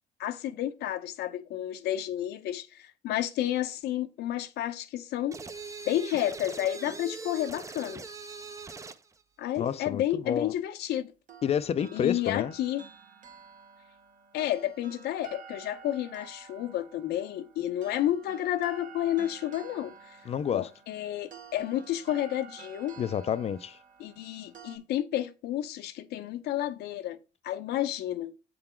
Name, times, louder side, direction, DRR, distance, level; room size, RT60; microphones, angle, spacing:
voice 1, 0.2-5.4 5.9-8.0 9.4-11.1 11.9-12.8 14.3-20.2 20.5-23.0 24.0-27.2 27.4-28.3, left 12 dB, 75° left, 0.7 m, -31 dB
sound 1, 5.3-9.1, right 4 dB, 20° right, 0.4 m, -41 dB
voice 2, 9.6-10.5 11.4-12.5 20.3-20.7 23.0-23.8, left 8 dB, 40° left, 0.4 m, -29 dB
sound 2, 11.3-24.8, right 7 dB, 50° right, 1.0 m, -51 dB
7.9 x 3.9 x 4.3 m
cardioid pair, 110°, 17 cm